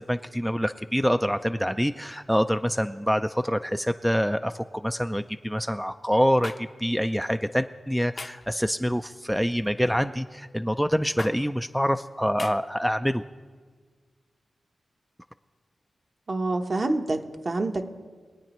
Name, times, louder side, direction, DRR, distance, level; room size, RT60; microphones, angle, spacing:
voice 1, 0.0-13.2, equal, ahead, 9 dB, 0.4 m, -26 dB
sound 1, 6.4-6.6 8.2-8.5 9.8-10.1 11.2-11.3 12.4-12.5, left 3 dB, 45° left, 0.7 m, -36 dB
voice 2, 16.3-17.9, right 2 dB, 50° right, 4 dB, 1.0 m, -27 dB
23.0 x 9.1 x 3.0 m, 1.5 s
cardioid pair, 55°, 0 cm